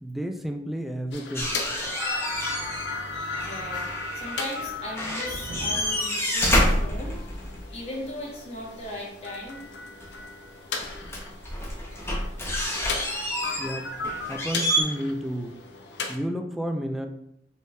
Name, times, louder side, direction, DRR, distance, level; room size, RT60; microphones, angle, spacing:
voice 1, 0.0-1.6 13.6-13.9 14.3-15.6 16.1-17.1, equal, ahead, 4 dB, 0.3 m, -31 dB
sound 1, 1.1-16.2, left 3 dB, 70° left, 0.6 m, -37 dB
sound 2, 1.3-3.0 3.2-4.7 4.9-7.7 10.0-10.1 10.8-14.8, equal, 15° left, 0.7 m, -28 dB
sound 3, 2.3-12.2, right 1 dB, 70° right, 0.7 m, -46 dB
voice 2, 3.4-3.8 4.1-7.2 7.7-9.7, left 1 dB, 35° left, -2 dB, 1.0 m, -37 dB
5.3 x 3.2 x 2.2 m, 0.77 s
head